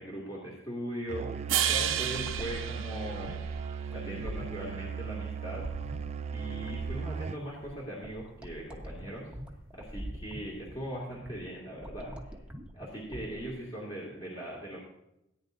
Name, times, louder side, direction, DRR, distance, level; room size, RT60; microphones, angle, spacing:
voice 1, 0.0-3.5 3.8-5.7 6.3-9.3 9.7-12.4 12.7-14.8, right 1 dB, 25° left, -5 dB, 2.3 m, -40 dB
Musical instrument, 1.1-7.5, right 6 dB, 30° right, 0.3 m, -37 dB
sound 1, 1.5-3.8, right 10 dB, 65° right, 0.9 m, -31 dB
sound 2, 2.1-13.5, equal, 5° right, 1.1 m, -44 dB
17.5 x 9.6 x 2.6 m, 0.85 s
head